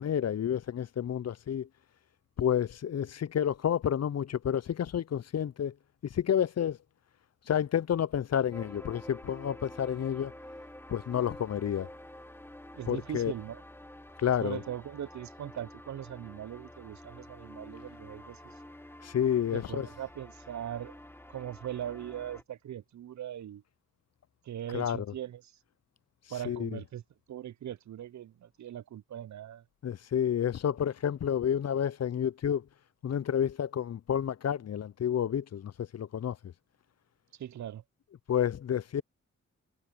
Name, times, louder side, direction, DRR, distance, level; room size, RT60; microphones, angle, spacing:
voice 1, 0.0-1.7 2.4-5.7 6.1-6.8 7.5-10.3 10.9-11.9 12.9-13.3 14.2-14.6 19.0-19.9 24.7-25.1 26.5-26.7 29.8-32.6 33.0-36.4 38.3-39.0, left 9 dB, 55° left, 0.6 m, -30 dB
sound 1, 8.5-22.4, left 1 dB, 5° left, 1.2 m, -49 dB
voice 2, 12.7-13.6 14.4-18.5 19.5-21.0 21.3-23.6 24.4-25.5 26.3-27.0 27.3-29.6 37.3-37.8, right 11 dB, 65° right, 0.5 m, -40 dB
cardioid pair, 45°, 32 cm